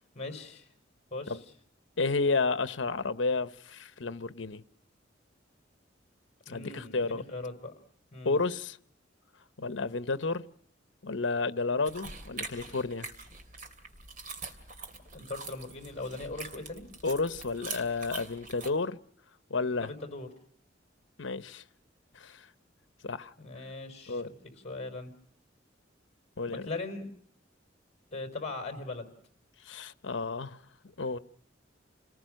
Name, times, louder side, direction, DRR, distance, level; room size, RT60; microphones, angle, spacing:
voice 1, 0.1-0.7 1.1-1.4 6.5-7.7 8.1-8.4 15.1-16.8 19.8-20.3 23.4-24.4 24.6-25.1 26.4-27.1 28.1-29.1, left 3 dB, 35° left, 4.8 m, -39 dB
voice 2, 2.0-4.6 6.5-7.2 8.2-8.8 9.6-10.4 11.0-13.1 17.0-19.0 19.5-19.9 21.2-21.6 22.1-22.4 23.0-23.3 24.1-24.3 26.4-26.7 29.6-30.6 31.0-31.2, left 3 dB, 85° left, 1.0 m, -31 dB
sound 1, 11.9-18.7, right 4 dB, 45° right, 2.8 m, -44 dB
29.0 x 19.5 x 6.5 m
head